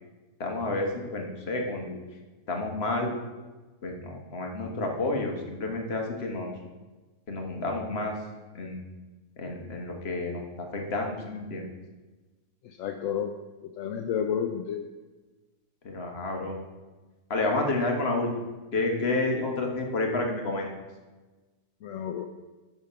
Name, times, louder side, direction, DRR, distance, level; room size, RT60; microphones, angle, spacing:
voice 1, 0.4-2.0 2.5-3.1 3.8-6.5 7.3-8.1 8.5-8.8 9.4-11.6 15.8-16.6 17.3-18.3 18.7-20.7, left 2 dB, 40° left, 2 dB, 1.3 m, -30 dB
voice 2, 12.6-13.3 13.6-14.9 21.8-22.3, left 8 dB, 65° left, 4 dB, 0.8 m, -31 dB
10.5 x 3.6 x 5.6 m, 1.2 s
omnidirectional pair, 1.7 m